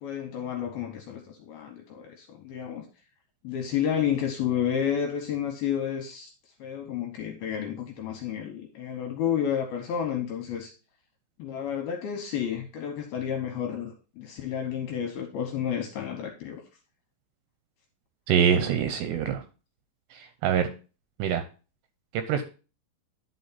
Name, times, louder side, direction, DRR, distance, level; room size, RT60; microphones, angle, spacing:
voice 1, 0.0-2.8 3.4-6.3 6.6-10.7 11.4-16.6, left 9 dB, 75° left, 3 dB, 2.4 m, -31 dB
voice 2, 18.3-19.4 20.1-20.7 21.2-21.4 22.1-22.4, right 8 dB, 80° right, 8 dB, 2.6 m, -24 dB
10.5 x 4.9 x 4.1 m, 0.34 s
omnidirectional pair, 5.4 m